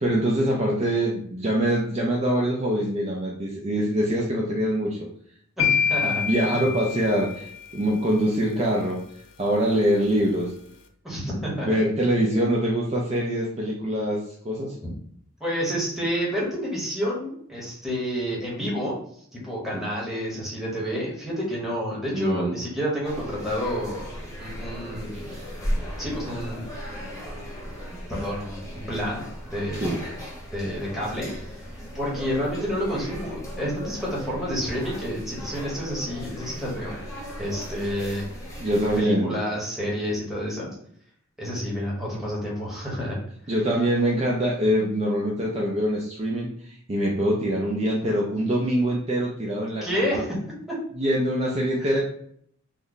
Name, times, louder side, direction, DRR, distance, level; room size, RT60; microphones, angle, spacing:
voice 1, 0.0-5.0 6.0-9.0 9.4-10.5 11.4-14.8 19.7-19.8 22.1-22.6 25.1-25.4 29.8-30.0 38.6-39.4 43.5-50.2 51.0-52.0, right 1 dB, 30° right, -2 dB, 0.5 m, -24 dB
sound 1, 5.6-7.7, left 7 dB, 60° left, 0.5 m, -26 dB
voice 2, 5.6-6.6 11.0-11.8 15.4-19.0 19.4-24.1 24.4-25.4 26.0-26.6 28.1-29.2 29.5-29.9 30.5-31.3 31.9-37.0 37.4-38.3 39.0-40.7 41.4-43.2 49.8-50.3 51.8-52.0, equal, ahead, -6 dB, 1.1 m, -29 dB
sound 2, 23.0-39.0, equal, 15° left, 0.9 m, -36 dB
3.2 x 2.1 x 3.9 m, 0.65 s
head